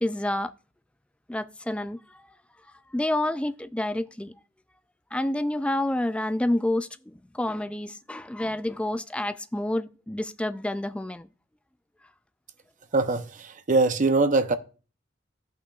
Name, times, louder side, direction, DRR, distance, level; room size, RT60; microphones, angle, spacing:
voice 1, 0.0-0.5 1.3-2.2 2.9-4.3 5.1-11.3, left 1 dB, 5° left, 0.3 m, -29 dB
voice 2, 12.9-13.3 13.7-14.5, right 3 dB, 40° right, 0.7 m, -21 dB
14.0 x 5.7 x 2.3 m
head